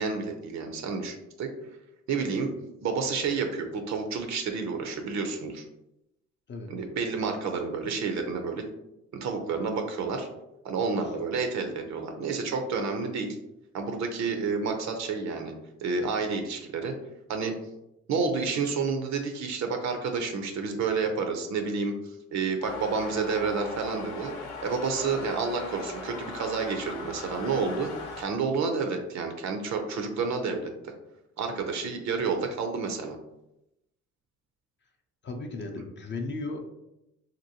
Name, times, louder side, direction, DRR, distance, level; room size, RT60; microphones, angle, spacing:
voice 1, 0.0-1.5 2.1-2.5 2.8-5.6 6.7-8.6 9.1-10.3 10.6-13.4 13.7-15.5 15.8-16.9 17.3-17.5 18.1-21.9 22.3-24.3 24.6-27.9 28.2-30.9 31.4-33.2, right 4 dB, 65° right, 5 dB, 0.5 m, -30 dB
sound 1, 22.6-28.2, left 3 dB, 75° left, 0.7 m, -39 dB
voice 2, 35.2-36.8, left 2 dB, 40° left, 3 dB, 0.4 m, -36 dB
2.9 x 2.6 x 2.7 m, 0.87 s
cardioid pair, 90°, 30 cm